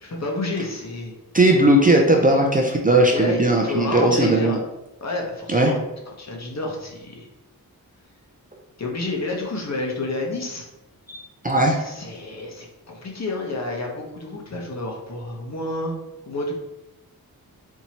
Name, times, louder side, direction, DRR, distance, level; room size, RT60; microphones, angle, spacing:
voice 1, 0.0-1.1 3.1-4.6 5.0-5.8 6.2-7.3 8.8-10.7 11.8-16.0 16.3-16.5, left 2 dB, 45° left, -1 dB, 0.9 m, -29 dB
voice 2, 1.3-4.6 5.5-5.7 11.1-11.9, right 1 dB, 25° right, 0 dB, 0.4 m, -18 dB
4.6 x 2.7 x 2.9 m, 0.93 s
wide cardioid pair, 95°, 38 cm